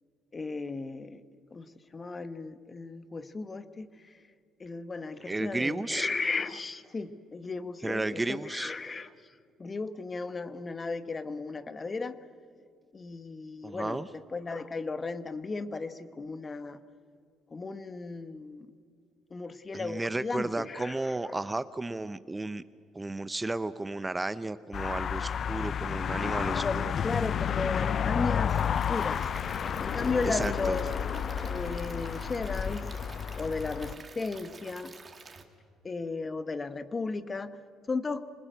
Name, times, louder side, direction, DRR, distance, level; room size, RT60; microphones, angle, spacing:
voice 1, 0.3-1.2 1.5-3.9 4.6-9.1 9.6-12.2 12.9-16.8 17.5-18.7 19.3-21.4 26.5-26.8 27.0-29.3 29.8-30.9 31.4-32.9 33.4-34.9 35.8-37.6 37.9-38.2, left 4 dB, 30° left, 12 dB, 1.3 m, -35 dB
voice 2, 5.2-6.1 7.8-8.7 13.6-14.1 19.7-22.6 22.9-26.9 30.2-30.8, right 2 dB, 15° right, 14 dB, 0.7 m, -33 dB
sound 1, 24.7-33.9, left 8 dB, 55° left, 0.5 m, -31 dB
Stream / Liquid, 28.5-35.4, right 4 dB, 35° right, 2.6 m, -50 dB
26.5 x 20.0 x 8.2 m, 2.3 s
supercardioid pair, 70°, 0 cm